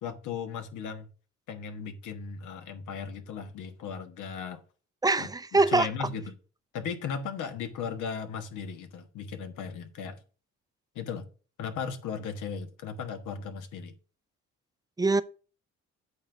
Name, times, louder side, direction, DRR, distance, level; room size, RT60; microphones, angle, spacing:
voice 1, 0.0-1.1 1.5-4.6 5.2-6.3 6.7-10.2 10.9-11.3 11.6-13.9, left 6 dB, 80° left, 1.3 m, -36 dB
voice 2, 5.0-6.1 15.0-15.2, right 3 dB, 15° right, 0.5 m, -24 dB
8.4 x 3.9 x 5.9 m
cardioid pair, 90°, 30 cm